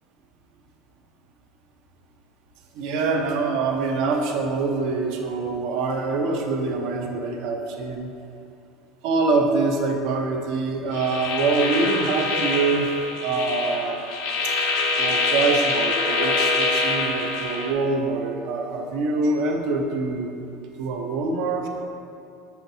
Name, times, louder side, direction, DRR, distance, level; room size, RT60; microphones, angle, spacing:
voice 1, 2.7-8.1 9.0-12.9 13.2-14.0 14.4-14.5 15.0-20.3 20.8-21.7, right 3 dB, 55° right, 2 dB, 0.7 m, -24 dB
sound 1, 10.9-17.7, left 3 dB, 60° left, 0.6 m, -25 dB
6.9 x 5.8 x 2.7 m, 2.6 s
cardioid pair, 160°, 0 cm